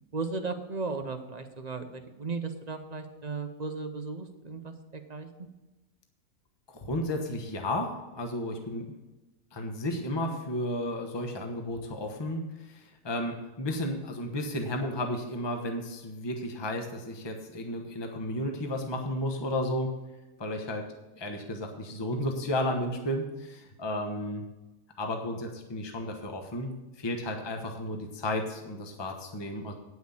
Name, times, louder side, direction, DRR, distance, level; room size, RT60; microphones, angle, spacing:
voice 1, 0.1-5.3, right 4 dB, 40° right, 7 dB, 0.7 m, -36 dB
voice 2, 6.7-8.8 9.5-19.9 20.4-24.4 25.0-26.7 27.0-29.7, left 1 dB, 20° left, 3 dB, 1.0 m, -33 dB
9.5 x 6.3 x 7.1 m, 1.1 s
omnidirectional pair, 1.5 m